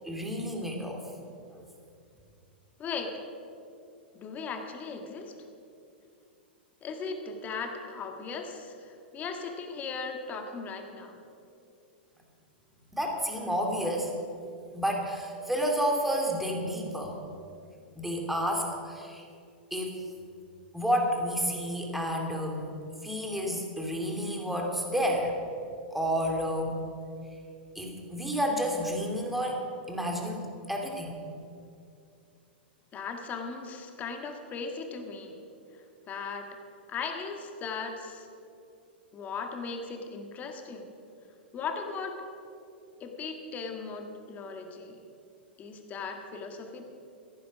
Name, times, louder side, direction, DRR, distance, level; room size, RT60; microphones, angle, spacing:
voice 1, 0.0-1.0 12.9-14.1 14.7-17.2 18.0-19.2 19.7-20.0 20.7-22.7 23.0-25.3 25.9-26.8 27.7-31.2, equal, 5° right, 0 dB, 2.5 m, -30 dB
voice 2, 2.8-3.2 4.1-5.4 6.8-11.2 32.9-35.3 36.1-36.5 36.9-38.3 39.1-40.9 41.5-42.2 43.0-45.0 45.6-46.9, left 5 dB, 30° left, 4 dB, 1.7 m, -37 dB
14.5 x 10.5 x 6.2 m, 2.5 s
hypercardioid pair, 105°, 6 cm